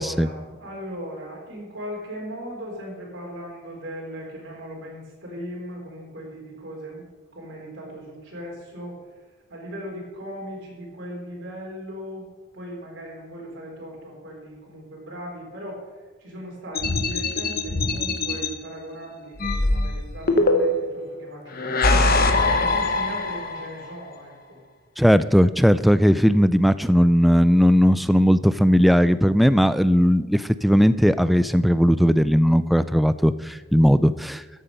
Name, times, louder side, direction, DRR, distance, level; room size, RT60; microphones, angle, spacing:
voice 1, 0.0-7.0 7.3-9.0 9.5-12.3 12.5-15.8 16.2-24.6, equal, 70° right, -3 dB, 3.9 m, -38 dB
sound 1, 16.8-18.5 19.4-20.9 21.5-23.7, left 2 dB, 50° left, 1.1 m, -22 dB
voice 2, 25.0-34.4, equal, ahead, 14 dB, 0.3 m, -18 dB
13.5 x 8.0 x 5.3 m, 1.3 s
head